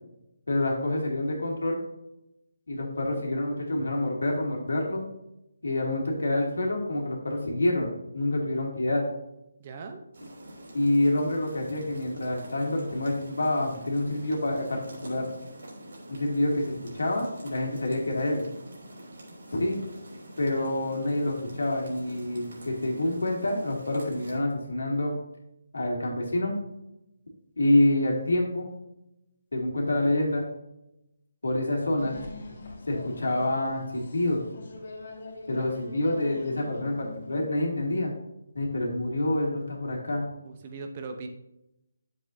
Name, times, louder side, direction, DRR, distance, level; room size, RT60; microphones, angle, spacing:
voice 1, 0.5-1.8 2.7-5.0 5.6-9.0 10.7-15.3 16.1-18.4 19.5-19.8 20.4-25.2 25.7-26.5 27.6-28.7 29.5-30.5 31.4-32.1 32.9-34.4 35.5-38.1 38.5-40.2, left 1 dB, 85° left, -1 dB, 2.6 m, -27 dB
voice 2, 9.6-10.0 20.6-20.7 40.4-41.3, right 4 dB, 30° right, 5 dB, 0.8 m, -39 dB
sound 1, 10.1-24.4, right 1 dB, 65° right, 3.0 m, -46 dB
sound 2, 32.0-37.4, left 2 dB, 55° left, 2.7 m, -43 dB
9.2 x 7.6 x 2.7 m, 0.89 s
hypercardioid pair, 165°, 0 cm